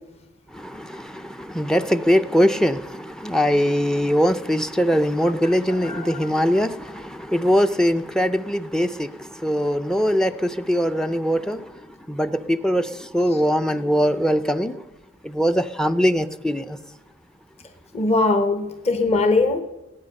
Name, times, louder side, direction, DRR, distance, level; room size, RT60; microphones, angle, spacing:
voice 1, 0.5-11.7 12.1-14.7 15.2-16.8, equal, 5° left, 12 dB, 0.5 m, -22 dB
voice 2, 5.4-6.3 17.9-19.6, left 3 dB, 30° left, 7 dB, 1.0 m, -21 dB
19.0 x 9.2 x 6.6 m, 1.0 s
head